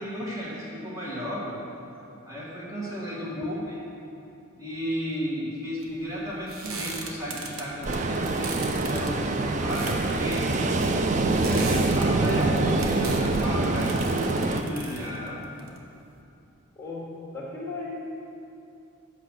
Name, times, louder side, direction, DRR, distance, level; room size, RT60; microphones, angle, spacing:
voice 1, 0.0-1.6 2.2-3.8 4.6-10.5 11.3-15.4, equal, 15° right, -7 dB, 1.8 m, -34 dB
sound 1, 5.8-16.2, right 3 dB, 80° right, 0.9 m, -39 dB
Ocean, 7.8-14.6, right 2 dB, 35° right, 0.4 m, -25 dB
voice 2, 17.3-18.0, left 3 dB, 10° left, -6 dB, 2.1 m, -35 dB
7.9 x 6.0 x 6.3 m, 2.7 s
head